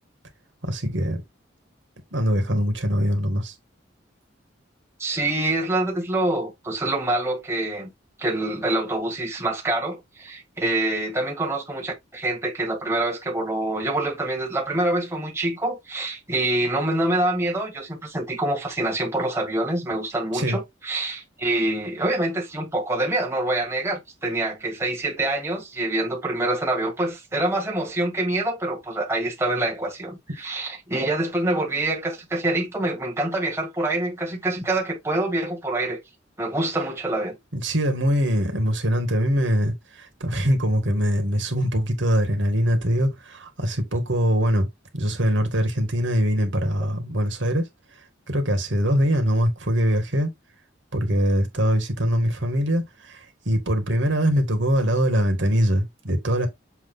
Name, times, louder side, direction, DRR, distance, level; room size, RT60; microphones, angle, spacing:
voice 1, 0.6-1.2 2.1-3.5 20.3-20.6 37.5-44.7 44.9-47.6 48.3-50.3 50.9-56.5, equal, 80° right, 2.1 m, -23 dB
voice 2, 5.0-7.9 8.2-36.0 36.4-37.4, right 2 dB, 15° right, 1.9 m, -26 dB
7.2 x 3.8 x 3.8 m
head